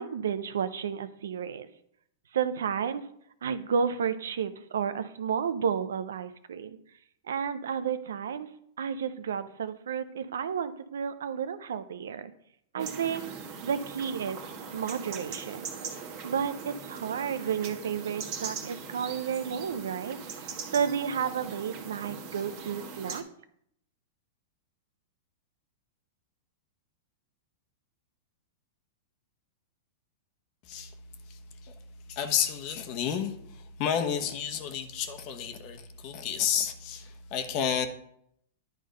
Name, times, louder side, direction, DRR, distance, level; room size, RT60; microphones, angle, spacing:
voice 1, 0.0-1.7 2.3-3.0 3.4-6.8 7.3-8.5 8.8-12.3 12.7-13.2 13.6-14.4 14.7-15.7 16.2-23.2, right 7 dB, 80° right, 0.6 m, -32 dB
sound 1, 12.8-23.2, right 5 dB, 50° right, 1.4 m, -41 dB
voice 2, 31.3-31.7 32.1-37.9, left 8 dB, 45° left, 1.1 m, -31 dB
10.5 x 3.7 x 5.3 m
hypercardioid pair, 115°, 0 cm